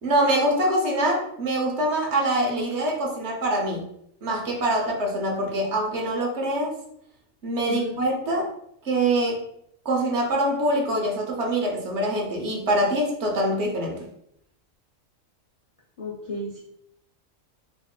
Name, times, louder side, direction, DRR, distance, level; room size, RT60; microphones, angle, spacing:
voice 1, 0.0-3.8 4.2-6.7 7.4-8.5 8.8-9.4 9.8-14.1, right 1 dB, 60° right, 0 dB, 1.0 m, -24 dB
voice 2, 16.0-16.6, left 2 dB, 65° left, -4 dB, 0.3 m, -33 dB
4.0 x 2.9 x 2.3 m, 0.73 s
omnidirectional pair, 1.4 m